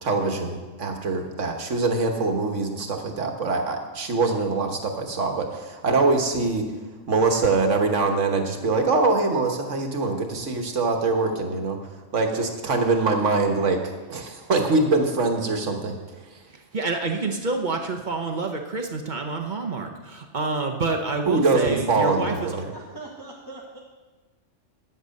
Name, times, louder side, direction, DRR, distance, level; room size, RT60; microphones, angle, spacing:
voice 1, 0.0-6.6 7.1-11.8 12.1-13.8 14.1-15.9 21.3-22.7, right 3 dB, 75° right, 4 dB, 1.6 m, -23 dB
voice 2, 16.7-22.6, right 3 dB, 45° right, 3 dB, 0.9 m, -28 dB
voice 3, 22.7-23.8, right 2 dB, 20° right, -3 dB, 1.2 m, -41 dB
9.6 x 8.0 x 6.4 m, 1.2 s
omnidirectional pair, 1.3 m